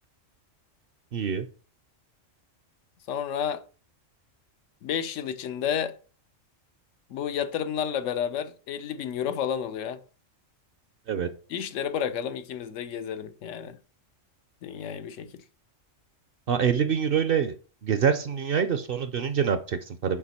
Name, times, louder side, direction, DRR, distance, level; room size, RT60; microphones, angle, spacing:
voice 1, 1.1-1.5 11.1-11.3 16.5-17.6 17.8-20.2, right 7 dB, 60° right, 0.7 m, -25 dB
voice 2, 3.1-3.6 4.8-6.0 7.1-10.0 11.5-13.8 14.6-15.3, left 8 dB, 80° left, 1.0 m, -31 dB
7.4 x 5.0 x 4.2 m
omnidirectional pair, 1.3 m